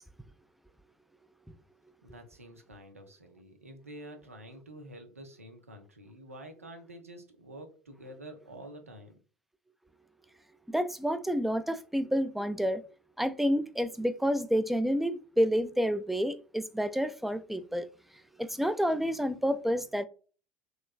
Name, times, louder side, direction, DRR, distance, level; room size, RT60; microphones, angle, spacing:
voice 1, 2.0-9.2, right 1 dB, 90° right, 0.6 m, -48 dB
voice 2, 10.7-12.8 13.2-17.9 18.4-20.1, equal, ahead, 0.3 m, -29 dB
3.1 x 3.0 x 2.3 m
figure-of-eight pair, 70°, 7 cm